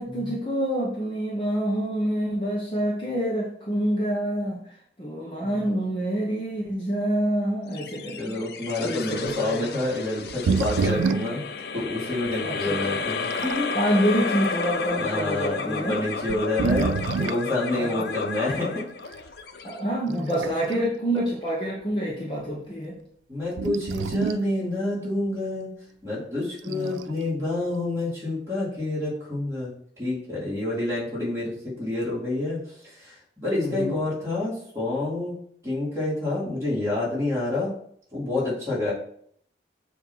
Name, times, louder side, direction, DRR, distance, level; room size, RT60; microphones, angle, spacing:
voice 1, 0.0-4.6 5.0-8.4 8.8-9.7 12.4-13.0 13.7-16.0 17.7-18.0 19.6-22.9 26.7-27.0 33.6-34.0, equal, 25° left, -3 dB, 1.0 m, -27 dB
sound 1, 7.7-20.4, left 4 dB, 60° left, 0.5 m, -32 dB
voice 2, 8.2-11.4 11.7-13.7 15.0-18.8 20.1-20.8 23.3-25.7 26.0-29.7 30.0-35.3 35.6-37.7 38.1-38.9, left 2 dB, 15° right, -7 dB, 2.6 m, -28 dB
sound 2, 9.3-9.4 10.3-11.4 12.3-12.4 13.1-13.7 14.4-14.6 15.5-15.6 16.2-17.5 19.1-19.3 20.1-20.8 21.1-21.2 23.6-24.5 26.6-27.1, right 5 dB, 90° right, 0.3 m, -27 dB
7.0 x 2.9 x 5.6 m, 0.66 s
head